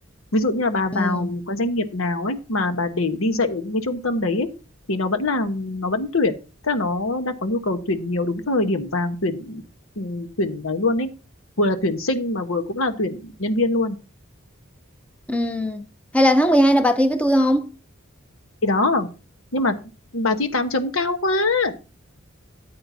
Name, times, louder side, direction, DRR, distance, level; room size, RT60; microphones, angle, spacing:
voice 1, 0.3-4.5 4.9-6.3 6.6-9.6 10.0-11.1 11.6-14.0 18.6-19.1 19.5-19.7 20.1-21.8, left 2 dB, 80° left, 1.2 m, -23 dB
voice 2, 0.9-1.3 15.3-15.8 16.1-17.7, equal, 5° left, 0.7 m, -19 dB
13.5 x 8.7 x 2.8 m
head